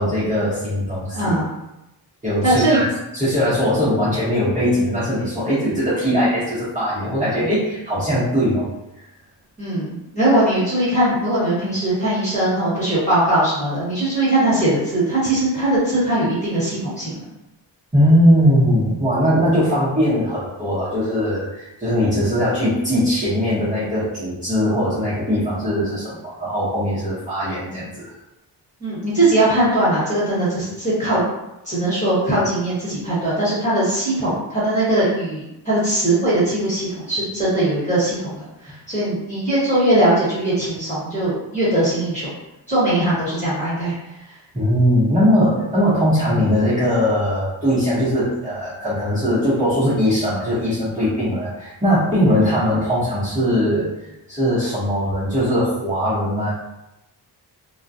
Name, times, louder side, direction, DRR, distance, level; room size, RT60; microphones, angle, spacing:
voice 1, 0.0-1.3 2.2-2.8 3.1-8.7 17.9-28.1 44.5-53.9 54.3-56.6, equal, 15° right, -13 dB, 0.8 m, -20 dB
voice 2, 1.1-1.5 2.4-2.8 9.6-17.3 19.5-19.6 28.8-31.2 31.6-42.3 42.7-43.9 52.4-52.5, right 1 dB, 15° left, -11 dB, 1.2 m, -20 dB
2.3 x 2.2 x 2.6 m, 0.92 s
wide cardioid pair, 160°, 44 cm